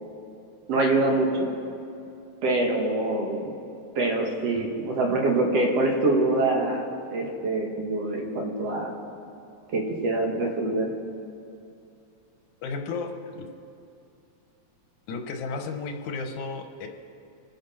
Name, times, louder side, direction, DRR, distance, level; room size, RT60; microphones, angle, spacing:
voice 1, 0.7-1.5 2.4-3.5 4.0-8.9 9.7-10.9, right 2 dB, 60° right, 1 dB, 2.5 m, -25 dB
voice 2, 12.6-13.5 15.1-16.9, left 4 dB, 85° left, 5 dB, 2.5 m, -33 dB
26.5 x 9.6 x 4.4 m, 2.6 s
omnidirectional pair, 3.4 m